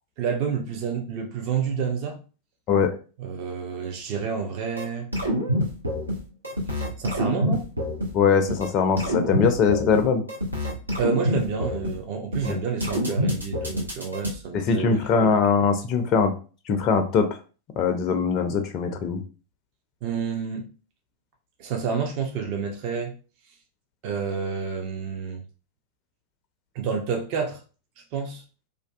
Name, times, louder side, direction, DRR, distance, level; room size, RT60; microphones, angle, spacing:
voice 1, 0.2-2.2 3.2-5.1 6.7-7.7 11.0-15.0 20.0-20.6 21.6-23.1 24.0-25.4 26.7-27.6 28.1-28.4, right 6 dB, 45° right, 0.5 m, -29 dB
sound 1, 4.8-4.9 5.1-6.2 6.4-8.1 8.5-8.7 9.0-10.0 10.3-11.9 12.3-12.5 12.8-14.3, equal, 85° right, 0.6 m, -26 dB
voice 2, 8.1-10.2 12.4-12.6 14.5-16.3 16.7-17.3 17.8-19.2, left 5 dB, 35° left, 0.3 m, -21 dB
2.5 x 2.2 x 2.3 m
figure-of-eight pair, 90°, 0 cm